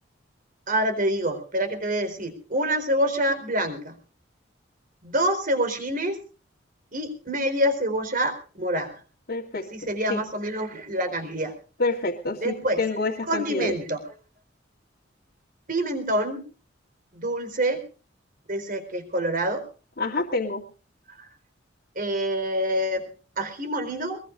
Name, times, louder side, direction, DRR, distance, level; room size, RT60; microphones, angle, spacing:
voice 1, 0.7-3.9 5.0-6.2 6.9-9.0 9.7-11.5 12.4-12.8 13.3-14.0 15.7-16.4 17.1-17.8 18.5-19.7 21.2-21.3 22.0-24.2, right 1 dB, 45° right, 7 dB, 4.2 m, -26 dB
voice 2, 9.3-9.7 10.1-10.2 11.8-13.8 20.0-20.6, left 3 dB, 55° left, -4 dB, 2.4 m, -27 dB
22.0 x 22.0 x 2.5 m, 0.37 s
head